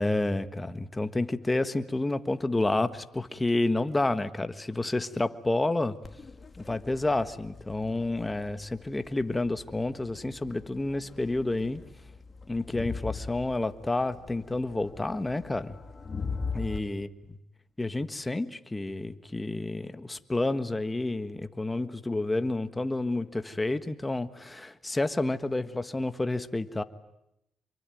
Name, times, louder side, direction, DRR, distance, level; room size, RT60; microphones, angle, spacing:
voice 1, 0.0-6.0 6.6-11.8 12.5-15.8 16.5-17.1 17.8-26.8, left 2 dB, 15° left, 10 dB, 1.5 m, -29 dB
Crowd, 6.0-16.8, left 4 dB, 35° left, 2.3 m, -41 dB
26.0 x 23.5 x 9.3 m, 0.85 s
cardioid pair, 90°, 0 cm